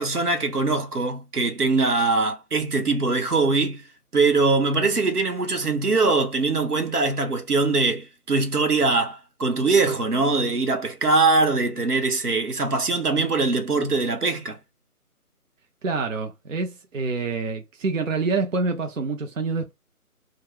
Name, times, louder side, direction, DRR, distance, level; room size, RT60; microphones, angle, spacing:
voice 1, 0.0-3.8 4.1-14.6, right 3 dB, 85° right, 1.0 m, -22 dB
voice 2, 15.8-19.7, right 4 dB, 60° right, 0.6 m, -27 dB
2.3 x 2.3 x 3.3 m
figure-of-eight pair, 150°, 45 cm